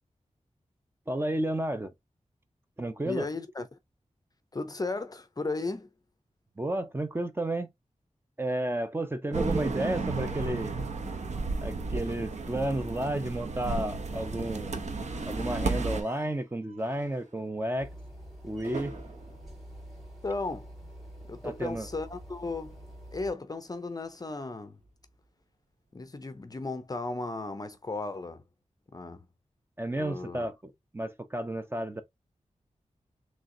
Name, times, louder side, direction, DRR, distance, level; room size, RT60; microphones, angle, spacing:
voice 1, 1.1-1.9 2.8-3.3 6.6-7.7 8.4-10.8 11.6-14.8 15.2-17.9 18.4-18.9 21.4-21.9 29.8-32.0, right 1 dB, 20° right, 0.6 m, -32 dB
voice 2, 3.0-3.8 4.5-5.9 20.2-20.7 21.3-22.8 23.1-24.8 25.9-28.4 28.9-29.3 29.9-30.5, left 3 dB, 30° left, 0.5 m, -35 dB
sound 1, 9.3-16.0, right 3 dB, 70° right, 0.7 m, -33 dB
sound 2, 14.8-20.8 21.1-21.3 21.6-21.7 22.9-25.3, right 3 dB, 85° right, 1.2 m, -49 dB
sound 3, 17.8-23.3, right 1 dB, ahead, 2.3 m, -47 dB
3.7 x 3.2 x 2.6 m
wide cardioid pair, 115°, 12 cm